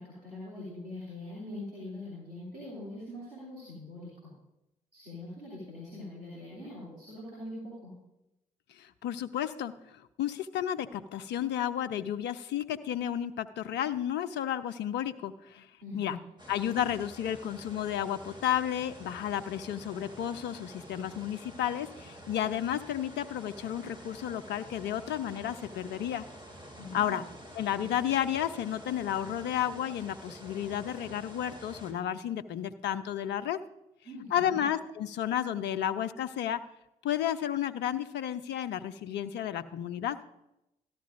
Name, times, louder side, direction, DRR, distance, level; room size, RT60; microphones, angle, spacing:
voice 1, 0.0-4.3 4.9-7.9 15.8-16.2 26.7-27.2 34.0-34.6, left 1 dB, 90° right, -8 dB, 3.0 m, -43 dB
voice 2, 8.8-15.7 15.9-16.2 16.5-26.2 26.9-27.2 27.5-33.6 34.3-36.6 37.0-40.2, left 10 dB, 65° left, 11 dB, 0.6 m, -32 dB
sound 1, 16.4-31.9, equal, 25° right, 3.5 m, -49 dB
13.5 x 12.0 x 2.6 m, 0.88 s
hypercardioid pair, 40°, 19 cm